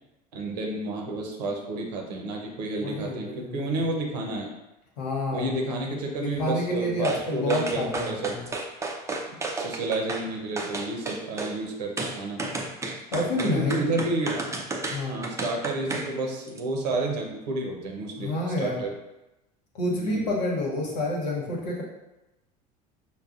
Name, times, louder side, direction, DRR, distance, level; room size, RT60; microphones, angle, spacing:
voice 1, 0.3-4.5 5.3-8.4 9.6-12.5 13.4-14.6 15.1-18.9 20.0-20.3, right 2 dB, 85° right, 0 dB, 0.8 m, -30 dB
voice 2, 2.8-3.7 5.0-5.6 6.2-8.5 13.1-13.8 14.9-15.2 18.2-18.8 19.7-21.8, left 1 dB, 90° left, -3 dB, 1.0 m, -28 dB
sound 1, 7.0-7.2 7.5-10.3 10.6-11.5 12.0-16.1 16.5-16.6, right 2 dB, 15° right, 0.5 m, -32 dB
5.6 x 2.1 x 2.5 m, 0.99 s
hypercardioid pair, 80°, 20 cm